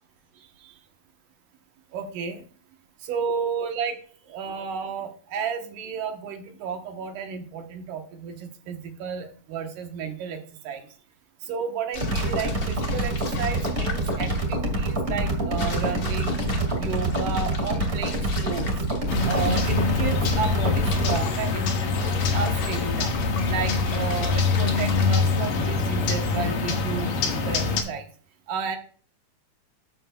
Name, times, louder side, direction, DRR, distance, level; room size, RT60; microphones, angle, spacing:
voice 1, 1.9-2.4 3.0-4.0 4.3-10.8 11.4-16.4 16.8-18.7 19.3-23.1 23.5-28.0 28.5-28.8, right 6 dB, 75° right, 5 dB, 2.7 m, -32 dB
sound 1, 11.9-25.5, left 4 dB, 55° left, 1.0 m, -38 dB
sound 2, 12.0-21.2, right 1 dB, 25° right, 2.0 m, -26 dB
sound 3, 19.1-27.8, left 4 dB, 85° left, 3.3 m, -24 dB
12.5 x 7.8 x 2.3 m, 0.43 s
omnidirectional pair, 3.8 m